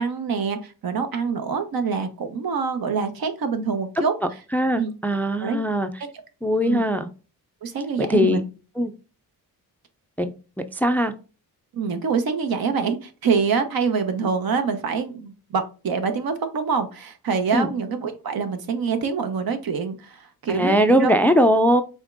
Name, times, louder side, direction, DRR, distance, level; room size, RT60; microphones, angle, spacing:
voice 1, 0.0-4.1 4.7-4.9 5.4-5.6 6.0-6.1 6.6-6.8 7.6-8.4 11.7-21.1, right 5 dB, 65° right, 8 dB, 1.0 m, -25 dB
voice 2, 4.5-5.9 6.4-7.1 8.0-8.4 8.8-8.9 10.2-10.3 10.7-11.1 17.5-17.7 20.5-21.8, equal, 5° left, 9 dB, 0.4 m, -20 dB
5.2 x 3.6 x 2.5 m, 0.33 s
cardioid pair, 105°, 38 cm